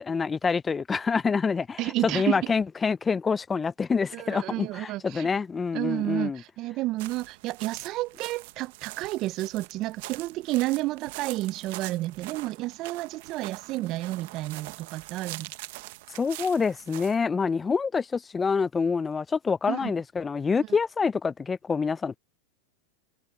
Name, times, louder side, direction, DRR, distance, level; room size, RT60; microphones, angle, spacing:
voice 1, 0.0-6.4 16.1-22.2, left 5 dB, 15° left, 0.4 m, -26 dB
voice 2, 1.8-2.5 4.1-5.3 5.7-15.5 19.7-19.9 20.6-20.7, right 17 dB, 45° right, 0.4 m, -31 dB
sound 1, 7.0-17.2, right 20 dB, 65° right, 1.1 m, -43 dB
hypercardioid pair, 125°, 0 cm